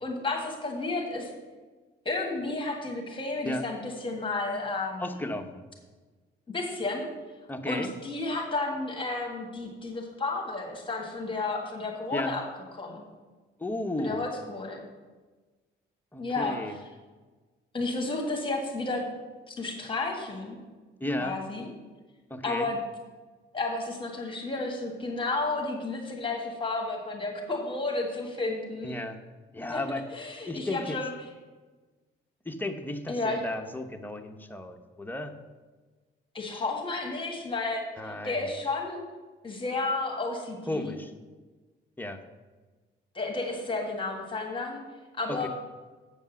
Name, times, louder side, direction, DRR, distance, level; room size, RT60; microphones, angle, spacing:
voice 1, 0.0-1.3 2.0-5.2 6.5-7.1 7.7-12.4 12.7-13.0 14.0-14.8 16.2-16.6 17.7-19.0 19.5-20.6 21.2-21.7 22.4-22.8 23.5-29.0 29.7-29.8 30.1-31.1 33.1-33.4 36.3-39.0 39.4-40.9 43.1-44.8 45.2-45.5, left 3 dB, 25° left, 0 dB, 1.7 m, -32 dB
voice 2, 5.0-5.7 7.5-7.9 12.1-12.3 13.6-14.2 16.1-16.7 21.0-21.4 22.3-22.7 28.8-29.2 29.5-30.0 30.4-31.0 32.5-35.3 38.0-38.5 40.7-41.1 42.0-42.2 45.3-45.5, left 1 dB, 10° left, 5 dB, 0.8 m, -34 dB
8.0 x 5.3 x 7.0 m, 1.3 s
cardioid pair, 90°, 20 cm